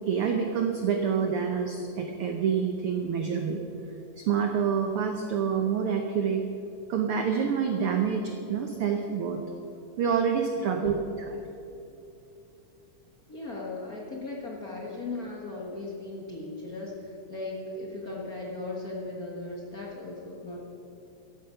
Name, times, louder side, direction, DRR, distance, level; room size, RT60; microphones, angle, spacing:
voice 1, 0.1-3.6 4.2-6.4 6.9-9.4 10.0-11.4, right 7 dB, 75° right, 4 dB, 1.3 m, -27 dB
voice 2, 10.5-11.0 13.3-20.6, left 2 dB, 40° left, -3 dB, 1.4 m, -37 dB
14.5 x 11.5 x 5.6 m, 2.9 s
omnidirectional pair, 3.6 m